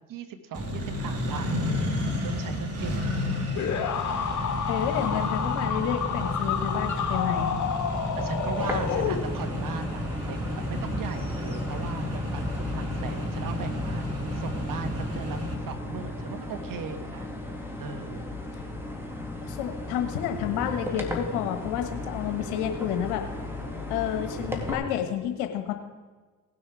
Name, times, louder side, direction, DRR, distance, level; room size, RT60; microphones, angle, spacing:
voice 1, 0.1-3.2 6.4-6.6 8.2-14.1 14.3-17.3 17.8-18.2 24.9-25.1, right 5 dB, 55° right, 8 dB, 1.6 m, -38 dB
Accelerating revving vroom, 0.5-15.5, left 1 dB, 35° right, 2.9 m, -32 dB
sound 1, 3.6-9.6, left 7 dB, 45° left, 2.0 m, -29 dB
voice 2, 4.7-7.6 19.4-23.2 23.9-25.7, left 10 dB, 75° left, 6 dB, 1.3 m, -30 dB
sound 2, 8.6-24.7, left 1 dB, 5° right, 2.5 m, -35 dB
18.0 x 6.3 x 4.8 m, 1.4 s
hypercardioid pair, 65°, 40 cm